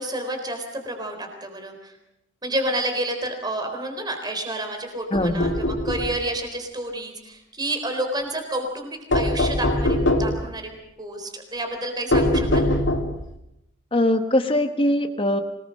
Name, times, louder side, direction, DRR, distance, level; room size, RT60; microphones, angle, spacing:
voice 1, 0.0-1.9 2.4-10.7 11.0-12.7, right 1 dB, 20° right, 5 dB, 3.9 m, -30 dB
sound 1, 5.1-6.1 9.1-10.4 12.1-13.3, left 1 dB, 75° left, 3.0 m, -22 dB
voice 2, 5.1-5.5 13.9-15.4, left 1 dB, 30° left, 6 dB, 1.5 m, -21 dB
25.5 x 19.5 x 6.5 m, 0.83 s
head